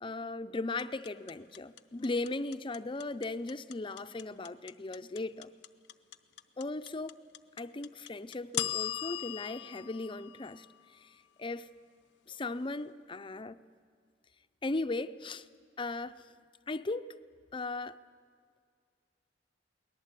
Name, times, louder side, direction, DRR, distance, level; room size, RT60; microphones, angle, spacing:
voice 1, 0.0-5.5 6.6-7.2 7.6-10.7 10.9-11.7 12.3-13.6 14.6-15.5 15.8-16.2 16.7-17.1 17.5-18.0, left 2 dB, 30° left, 0.6 m, -37 dB
sound 1, 0.8-11.0, left 12 dB, 75° left, 0.8 m, -39 dB
23.5 x 18.5 x 8.2 m
head